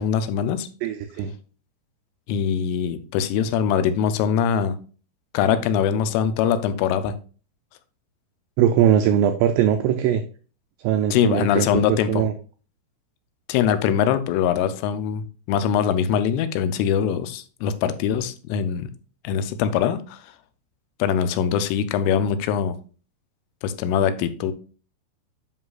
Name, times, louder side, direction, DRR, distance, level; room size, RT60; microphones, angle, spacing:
voice 1, 0.0-0.7 2.3-4.8 5.3-7.2 11.1-12.3 13.5-18.9 19.2-20.2 21.0-22.8 23.6-24.5, left 8 dB, 85° left, 12 dB, 3.2 m, -22 dB
voice 2, 0.8-1.3 8.6-10.2 10.8-12.3, right 9 dB, 85° right, 7 dB, 2.5 m, -20 dB
9.6 x 5.5 x 2.4 m, 0.37 s
omnidirectional pair, 5.6 m